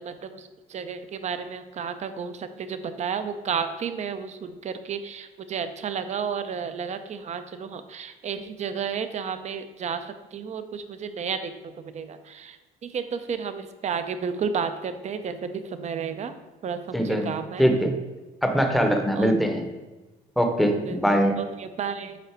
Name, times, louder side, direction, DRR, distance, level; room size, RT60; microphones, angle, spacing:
voice 1, 0.0-12.6 12.8-16.3 16.6-17.7 19.2-19.3 20.6-21.0 21.4-22.2, right 6 dB, 45° right, 10 dB, 0.6 m, -32 dB
voice 2, 16.9-17.3 17.6-17.9 18.4-19.6 20.4-21.4, equal, ahead, 5 dB, 0.8 m, -22 dB
8.2 x 4.0 x 4.4 m, 1.1 s
cardioid pair, 110°, 17 cm